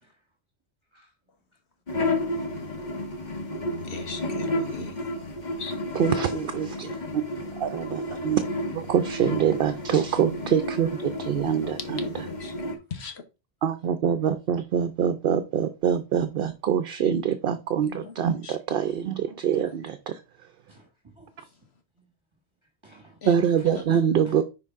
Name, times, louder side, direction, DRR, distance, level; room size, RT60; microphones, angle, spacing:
sound 1, 1.9-12.8, left 1 dB, 45° left, 1.3 m, -31 dB
voice 1, 3.9-4.9 5.5-5.7 11.5-12.5 12.9-13.2 17.8-18.1 18.4-18.6 23.2-23.3, left 4 dB, 70° left, 1.4 m, -38 dB
voice 2, 5.9-7.2 7.6-12.2 13.6-20.2 23.2-24.4, right 8 dB, 60° right, 0.8 m, -25 dB
voice 3, 20.7-21.6 22.0-22.1 22.8-23.2 23.6-23.7 24.2-24.4, right 2 dB, 25° right, 1.4 m, -54 dB
9.7 x 4.6 x 3.6 m
omnidirectional pair, 1.1 m